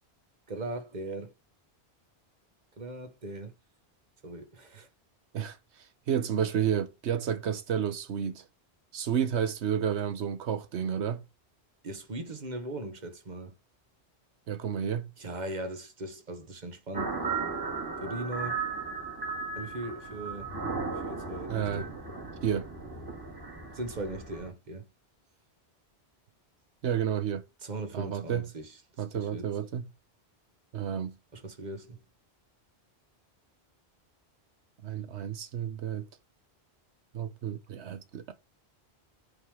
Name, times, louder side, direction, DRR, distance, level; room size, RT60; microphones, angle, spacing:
voice 1, 0.5-1.3 2.8-3.5 4.2-4.9 11.8-13.5 15.2-17.2 18.0-18.6 19.5-20.5 21.0-22.0 23.7-24.9 27.6-28.7 29.1-29.5 31.3-32.0, right 2 dB, 40° right, 1.4 m, -39 dB
voice 2, 5.3-8.4 8.9-11.2 14.5-15.1 21.5-21.9 22.4-22.7 26.8-27.4 27.9-28.5 29.0-29.9 30.7-31.1 34.8-36.1 37.1-38.3, right 8 dB, 80° right, 1.1 m, -31 dB
sound 1, 16.9-24.5, right 4 dB, 20° right, 2.2 m, -36 dB
8.5 x 3.7 x 4.9 m
omnidirectional pair, 1.1 m